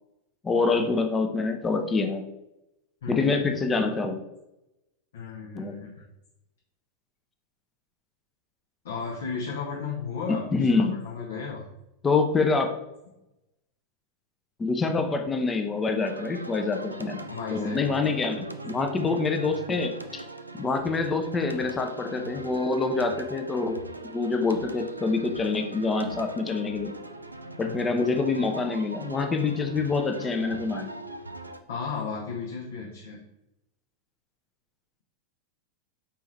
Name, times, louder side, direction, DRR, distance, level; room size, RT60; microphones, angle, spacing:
voice 1, 0.4-2.2 3.1-4.2 5.6-5.8 10.5-11.0 12.0-12.7 14.6-20.2 20.6-23.8 24.1-26.9 27.6-30.9, left 4 dB, 15° left, 5 dB, 0.5 m, -26 dB
voice 2, 3.0-3.8 5.1-6.0 8.8-11.7 17.3-18.3 27.6-28.1 31.7-33.2, left 5 dB, 60° left, -2 dB, 0.7 m, -35 dB
sound 1, 16.0-31.6, right 2 dB, 80° right, 0.3 m, -41 dB
4.2 x 3.4 x 3.1 m, 0.90 s
figure-of-eight pair, 90°, 0 cm